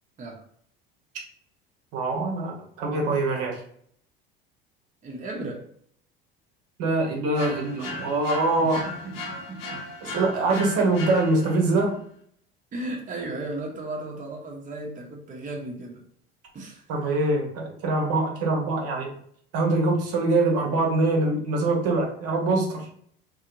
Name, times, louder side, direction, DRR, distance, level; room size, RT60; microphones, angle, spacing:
voice 1, 1.9-3.6 6.8-8.9 10.0-12.0 16.9-19.1 19.5-22.9, right 2 dB, 55° right, 0 dB, 0.9 m, -24 dB
voice 2, 5.0-5.7 8.6-9.8 12.7-16.0 16.5-16.8, right 2 dB, 25° right, 0 dB, 0.8 m, -35 dB
sound 1, 7.3-11.7, left 2 dB, 75° left, 0.8 m, -37 dB
2.7 x 2.7 x 2.5 m, 0.62 s
hypercardioid pair, 70°, 29 cm